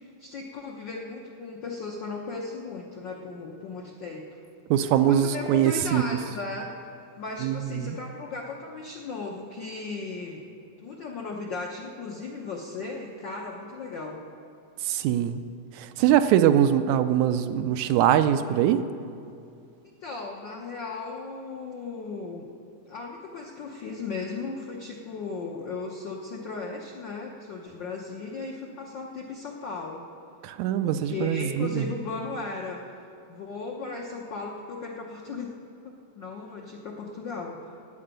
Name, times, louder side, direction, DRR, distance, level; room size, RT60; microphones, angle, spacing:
voice 1, 0.0-4.2 5.1-6.7 7.2-10.4 10.8-14.2 20.0-22.5 22.9-30.0 30.8-32.9 33.3-35.5 35.8-37.7, left 3 dB, 70° left, 0 dB, 1.0 m, -36 dB
voice 2, 4.7-6.0 7.4-8.0 14.8-15.4 15.8-18.9 30.4-31.9, right 10 dB, 80° right, 10 dB, 1.8 m, -22 dB
12.0 x 8.8 x 8.9 m, 2.4 s
omnidirectional pair, 3.4 m